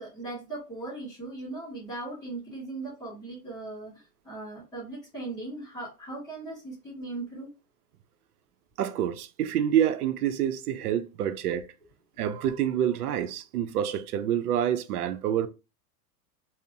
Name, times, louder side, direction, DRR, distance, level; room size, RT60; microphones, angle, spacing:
voice 1, 0.0-7.5, right 2 dB, ahead, 0.4 m, -38 dB
voice 2, 8.8-11.6 12.2-15.5, right 10 dB, 90° right, 0.5 m, -27 dB
2.6 x 2.0 x 2.7 m
supercardioid pair, 170°, 44 cm